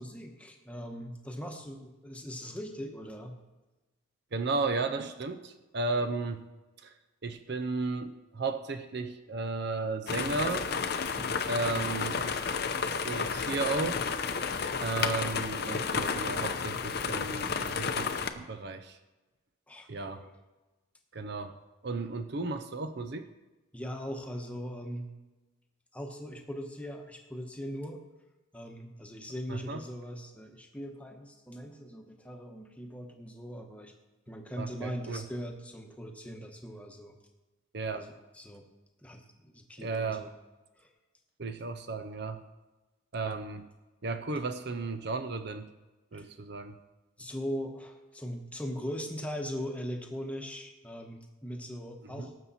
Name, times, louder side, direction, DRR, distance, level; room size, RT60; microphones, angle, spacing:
voice 1, 0.0-3.4 11.2-11.5 19.7-20.3 23.7-25.1 25.9-28.0 28.5-33.9 34.3-37.2 37.9-38.6 39.0-40.3 40.8-40.9 46.1-46.3 47.2-52.4, equal, 5° left, 2 dB, 1.1 m, -40 dB
voice 2, 4.3-6.4 6.8-6.9 7.2-10.7 11.5-12.4 13.0-14.0 14.8-19.0 19.9-20.3 21.1-21.5 21.8-23.3 29.5-29.8 34.6-35.2 37.7-38.1 39.8-40.3 41.4-42.4 43.1-43.7 44.0-45.7 46.1-46.8 52.1-52.3, right 3 dB, 55° right, 9 dB, 0.6 m, -34 dB
sound 1, 10.1-18.3, left 5 dB, 50° left, 0.7 m, -32 dB
18.5 x 7.2 x 4.2 m, 1.1 s
head